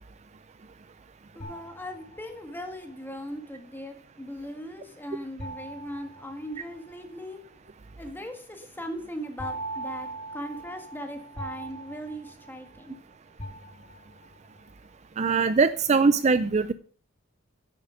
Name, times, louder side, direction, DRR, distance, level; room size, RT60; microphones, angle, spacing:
voice 1, 1.3-7.4 8.0-13.0, equal, 10° left, 1.7 m, -39 dB
sound 1, 1.4-2.6 5.4-7.0 9.4-13.0 13.4-14.3, right 2 dB, 35° left, 2.2 m, -40 dB
voice 2, 15.2-16.7, right 4 dB, 35° right, 0.4 m, -21 dB
10.0 x 8.4 x 5.0 m
head